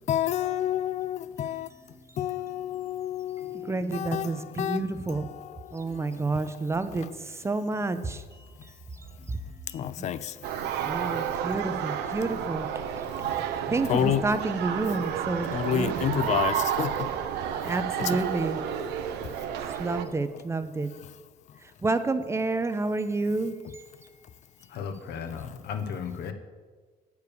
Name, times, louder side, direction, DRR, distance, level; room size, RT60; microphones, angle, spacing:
voice 1, 0.1-1.7 2.2-6.4 6.9-7.1 8.5-8.7 9.2-9.3 9.7-10.8 13.1-13.5 13.8-14.3 15.5-17.1 17.6-18.2 19.2-19.5 21.0-21.1 21.5-21.6 25.4-25.6, left 10 dB, 45° left, 0.4 m, -31 dB
voice 2, 3.5-5.3 5.7-8.2 9.3-9.4 9.7-12.7 13.7-16.2 17.6-18.8 19.7-20.9 21.8-23.8, right 3 dB, 15° right, 0.5 m, -30 dB
sound 1, 10.4-20.0, right 9 dB, 80° right, 0.6 m, -31 dB
voice 3, 24.7-26.3, left 7 dB, 75° left, 0.9 m, -35 dB
8.3 x 4.7 x 6.8 m
cardioid pair, 110°, 17 cm